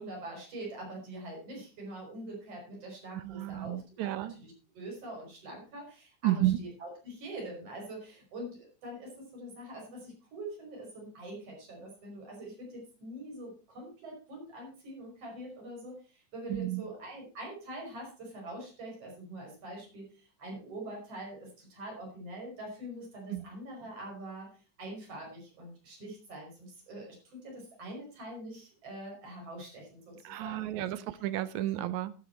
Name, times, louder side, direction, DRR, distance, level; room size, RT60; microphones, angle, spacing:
voice 1, 0.0-4.1 4.4-20.0 20.4-24.5 24.8-31.0, right 1 dB, 45° right, 6.2 m, -44 dB
voice 2, 3.1-4.4 6.2-6.6 16.5-16.8 23.3-23.4 30.2-32.1, right 14 dB, 75° right, 1.9 m, -32 dB
11.0 x 11.0 x 4.4 m
omnidirectional pair, 3.7 m